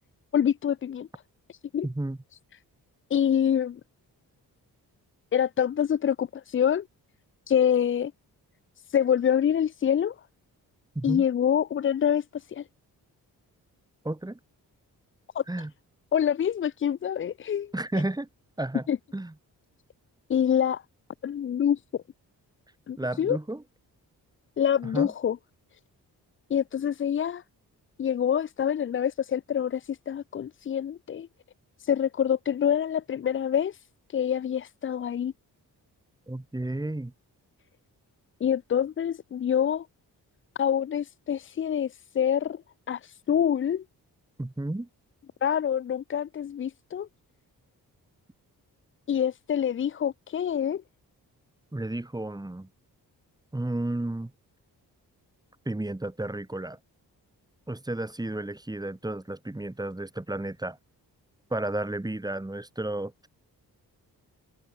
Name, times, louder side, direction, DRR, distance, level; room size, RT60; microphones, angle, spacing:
voice 1, 0.3-1.1 1.5-1.9 3.1-3.8 5.3-6.9 7.5-8.1 8.9-10.1 11.0-12.6 15.3-15.4 16.1-17.7 18.9-19.0 20.3-20.8 21.2-21.8 22.9-23.4 24.6-25.4 26.5-27.4 28.0-31.3 31.8-33.8 34.1-35.3 38.4-39.9 40.6-42.6 42.9-43.8 45.4-47.1 49.1-50.8, left 9 dB, 30° left, 0.4 m, -26 dB
voice 2, 1.8-2.2 10.9-11.2 14.0-14.4 15.5-15.7 17.7-18.3 18.6-18.9 19.1-19.3 23.0-23.6 24.9-25.1 36.3-37.1 44.4-44.9 51.7-52.7 53.5-54.3 55.6-56.8 57.7-60.8 61.5-63.3, right 1 dB, 10° right, 1.1 m, -32 dB
supercardioid pair, 40°, 42 cm